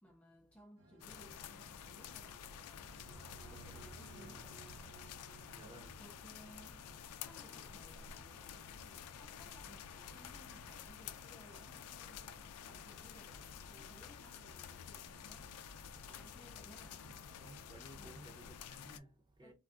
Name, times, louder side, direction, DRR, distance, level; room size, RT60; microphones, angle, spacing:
voice 1, 0.0-4.6 5.8-15.6 16.0-17.0 17.9-18.3 19.4-19.5, equal, 5° left, 0.3 m, -62 dB
sound 1, 0.8-17.5, right 1 dB, 70° right, 1.0 m, -65 dB
sound 2, 1.0-19.0, left 7 dB, 90° left, 0.4 m, -51 dB
sound 3, 2.8-7.0, right 5 dB, 90° right, 0.5 m, -59 dB
voice 2, 5.4-6.0 12.2-12.8 17.0-17.1 17.4-19.5, right 1 dB, 20° right, 0.7 m, -57 dB
3.6 x 2.2 x 2.4 m
head